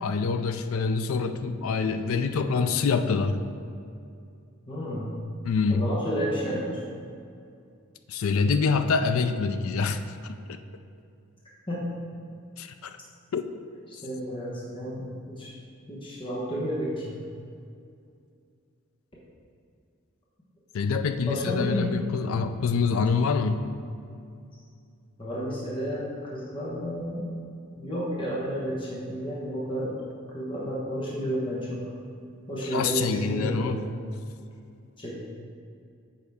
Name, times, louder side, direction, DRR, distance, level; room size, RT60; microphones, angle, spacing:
voice 1, 0.0-3.4 5.4-5.9 8.1-10.0 10.3-10.4 12.6-13.0 13.3-13.4 20.7-23.7 32.7-33.8, left 5 dB, 70° left, 9 dB, 0.4 m, -26 dB
voice 2, 4.7-5.1 5.7-6.8 11.7-11.8 13.9-15.6 15.9-17.1 21.2-21.9 25.2-27.3 27.8-29.9 30.3-31.8 32.5-33.9 35.0-35.1, equal, 20° left, -6 dB, 1.0 m, -31 dB
8.5 x 4.8 x 3.5 m, 2.4 s
head